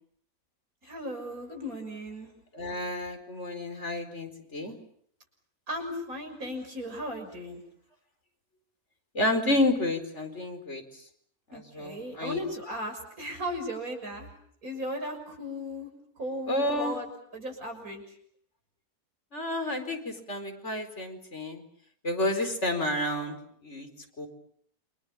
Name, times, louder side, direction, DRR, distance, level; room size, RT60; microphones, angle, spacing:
voice 1, 0.8-2.3 5.7-7.6 11.5-14.3 14.6-15.9 16.2-18.0, equal, 75° right, 4 dB, 6.8 m, -36 dB
voice 2, 2.5-4.7 9.1-10.8 11.5-12.4 16.5-17.0 19.3-21.6 22.0-23.4 23.6-23.9 24.2-24.3, left 1 dB, 50° left, 6 dB, 4.7 m, -30 dB
29.0 x 26.0 x 7.1 m, 0.65 s
omnidirectional pair, 1.5 m